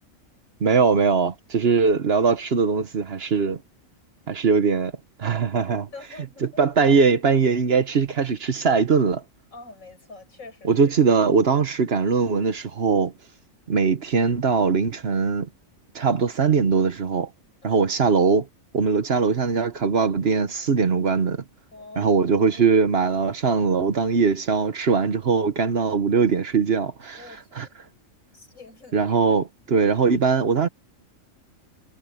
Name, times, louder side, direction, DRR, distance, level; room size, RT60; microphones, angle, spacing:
voice 1, 0.6-3.6 4.3-4.9 5.2-5.9 6.6-9.2 10.6-13.1 13.7-15.5 15.9-17.3 17.6-18.5 18.7-21.4 22.0-27.2 27.6-27.7 28.9-30.7, right 5 dB, 50° right, 1.2 m, -21 dB
voice 2, 5.9-6.6 9.5-10.8 17.6-17.9 21.7-22.3 27.1-27.8 28.3-29.0, left 3 dB, 80° left, 5.9 m, -44 dB
omnidirectional pair, 1.4 m